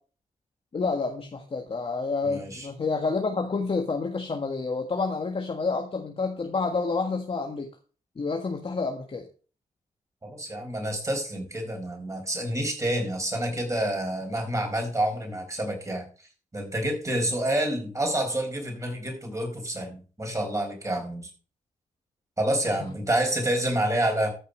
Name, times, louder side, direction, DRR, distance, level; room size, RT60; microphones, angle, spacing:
voice 1, 0.7-7.7 8.1-9.3, left 4 dB, 40° left, 3 dB, 1.6 m, -29 dB
voice 2, 2.3-2.7 10.2-16.0 16.5-21.3 22.4-24.3, right 1 dB, 20° right, 3 dB, 4.9 m, -28 dB
14.0 x 5.5 x 5.1 m, 0.38 s
cardioid pair, 70°, 14 cm